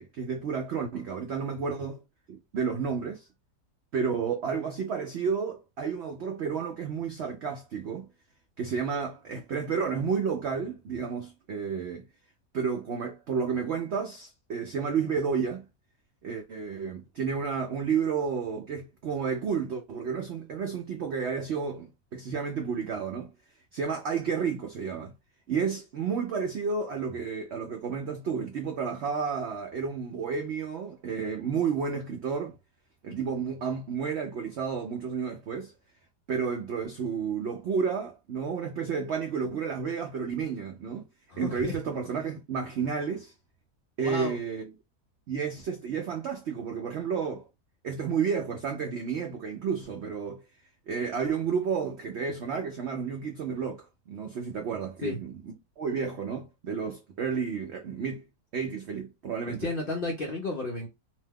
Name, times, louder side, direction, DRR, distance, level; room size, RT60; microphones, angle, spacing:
voice 1, 0.0-2.0 2.3-3.3 3.9-8.1 8.6-12.0 12.5-15.6 16.2-23.3 23.7-25.1 25.5-32.6 33.0-35.7 36.3-41.1 41.4-43.3 44.0-44.7 45.3-47.5 47.8-50.4 50.9-58.3 58.5-59.7, right 6 dB, 80° right, 0.6 m, -31 dB
voice 2, 41.3-41.8 44.0-44.4 55.0-55.2 59.5-60.9, left 2 dB, 60° left, 0.5 m, -32 dB
2.8 x 2.2 x 3.3 m
omnidirectional pair, 1.7 m